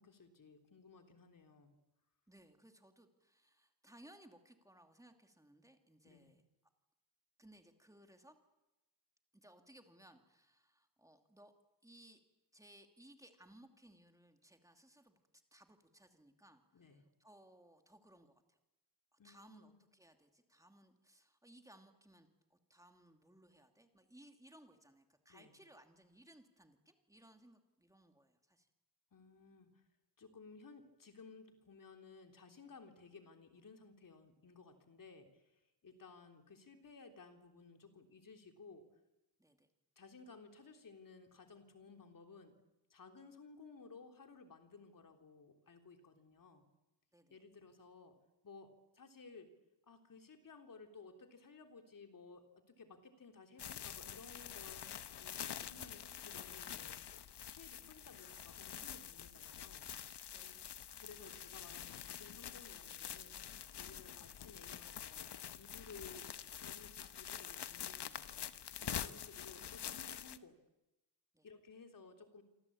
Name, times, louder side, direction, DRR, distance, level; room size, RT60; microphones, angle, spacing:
voice 1, 0.0-1.8 6.0-6.3 16.7-17.0 19.2-19.8 25.3-25.6 29.1-29.8 30.2-38.8 39.9-42.6 42.9-46.6 47.3-48.1 48.4-49.5 49.9-54.9 55.2-57.1 57.5-59.8 60.4-60.5 61.0-63.4 63.8-65.3 65.6-66.3 66.6-68.3 68.8-70.6 71.4-72.4, left 4 dB, 55° left, 5 dB, 3.4 m, -57 dB
voice 2, 2.3-6.4 7.4-8.4 9.3-11.5 11.8-12.2 12.5-15.2 15.5-18.6 19.1-28.7 35.8-35.9 39.4-39.7 47.1-47.4 60.3-60.7 64.0-64.1 69.2-69.3 71.3-71.5, right 1 dB, 10° right, 5 dB, 2.6 m, -63 dB
sound 1, 53.6-70.4, left 9 dB, 80° left, 1.1 m, -47 dB
27.5 x 25.0 x 8.7 m, 0.99 s
wide cardioid pair, 145°, 40 cm